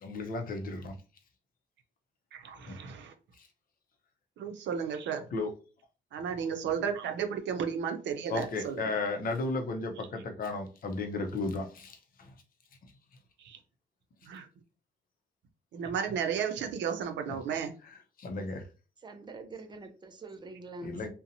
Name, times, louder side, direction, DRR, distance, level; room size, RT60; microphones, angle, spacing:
voice 1, 0.0-0.9 2.7-2.8 3.4-3.5 5.3-5.5 8.3-12.3 17.8-18.6 20.8-21.1, left 3 dB, 50° left, 4 dB, 0.6 m, -34 dB
voice 2, 2.3-3.1 4.4-5.2 6.1-8.8 13.4-13.6 14.3-14.5 15.7-17.7, right 7 dB, 90° right, 6 dB, 0.5 m, -33 dB
voice 3, 19.0-21.1, right 3 dB, 25° right, 7 dB, 0.4 m, -45 dB
2.6 x 2.1 x 2.7 m, 0.34 s
cardioid pair, 140°, 18 cm